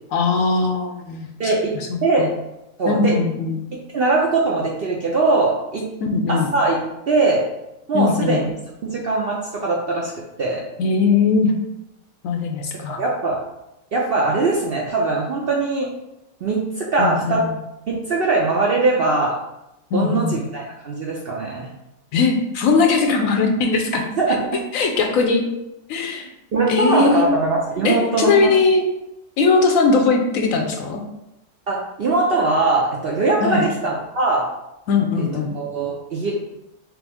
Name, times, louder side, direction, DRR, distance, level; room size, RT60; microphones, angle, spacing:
voice 1, 0.1-2.3 2.9-3.6 6.0-6.5 7.9-8.4 10.8-11.5 12.2-13.0 17.0-17.6 19.9-20.4 22.1-24.0 24.3-24.4 24.7-25.4 25.9-26.3 26.7-27.4 27.8-28.8 29.4-31.0 33.4-33.7 34.9-35.5, left 4 dB, 70° left, 3 dB, 1.0 m, -20 dB
voice 2, 1.4-1.7 2.0-2.3 2.8-3.1 3.9-5.8 6.3-6.8 7.1-7.4 7.9-8.4 8.8-10.1 10.4-10.6 13.0-13.4 13.9-15.9 16.4-17.5 17.9-19.4 19.9-21.7 24.2-24.4 26.5-28.5 31.7-34.5 35.2-35.3 35.5-36.3, right 3 dB, 60° right, -2 dB, 0.6 m, -21 dB
5.9 x 2.0 x 3.4 m, 0.88 s
omnidirectional pair, 1.6 m